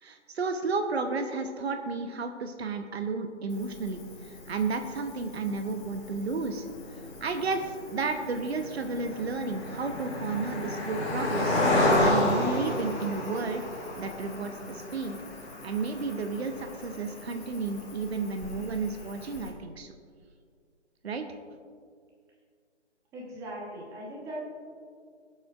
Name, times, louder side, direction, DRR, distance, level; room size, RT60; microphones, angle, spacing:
voice 1, 0.0-6.6 7.2-13.6 14.0-15.2 15.6-19.9 21.0-21.2, right 4 dB, 60° right, 6 dB, 0.9 m, -32 dB
Cricket, 3.5-19.5, left 1 dB, 25° left, 1.9 m, -32 dB
voice 2, 23.1-24.4, right 1 dB, 10° right, -4 dB, 1.2 m, -40 dB
21.5 x 7.7 x 2.5 m, 2.1 s
figure-of-eight pair, 140°, 36 cm